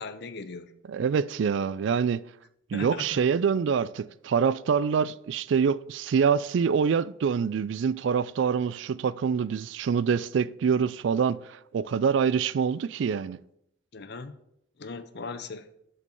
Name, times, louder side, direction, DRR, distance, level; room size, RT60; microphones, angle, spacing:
voice 1, 0.0-0.7 2.7-3.2 13.9-14.4 14.8-15.7, left 4 dB, 55° left, 0.7 m, -38 dB
voice 2, 0.9-2.2 2.7-13.4, right 6 dB, 60° right, 0.3 m, -25 dB
6.7 x 5.3 x 6.9 m
head